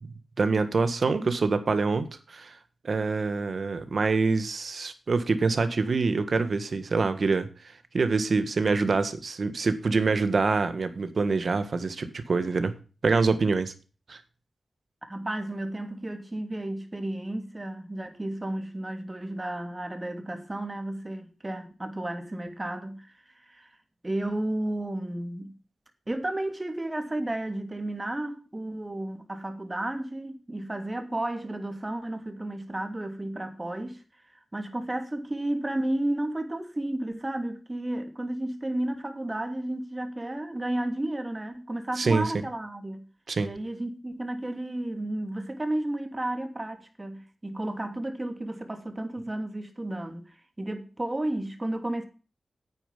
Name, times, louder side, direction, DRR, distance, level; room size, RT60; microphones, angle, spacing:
voice 1, 0.4-2.5 2.8-7.5 7.9-12.7 13.0-13.7 14.1-14.2 42.0-42.3 43.3-43.5, right 4 dB, 65° right, 1.7 m, -25 dB
voice 2, 15.0-23.7 24.0-25.5 26.1-34.0 34.3-43.1 43.4-52.1, right 1 dB, 25° right, 2.7 m, -33 dB
9.3 x 9.2 x 5.3 m
cardioid pair, 60°, 0 cm